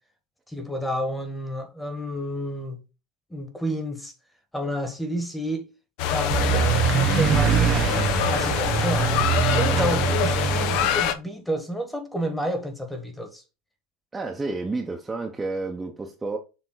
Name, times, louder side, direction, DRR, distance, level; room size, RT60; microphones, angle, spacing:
voice 1, 0.5-2.8 3.3-4.1 4.5-5.7 6.1-8.0 8.3-9.2 9.5-13.4, equal, 5° left, 1.5 m, -30 dB
sound 1, 6.0-11.1, left 9 dB, 60° left, 0.8 m, -25 dB
sound 2, 6.3-10.9, right 9 dB, 30° right, 0.5 m, -23 dB
voice 2, 14.1-16.4, right 3 dB, 10° right, 0.9 m, -30 dB
7.1 x 3.6 x 3.9 m
supercardioid pair, 135°, 0 cm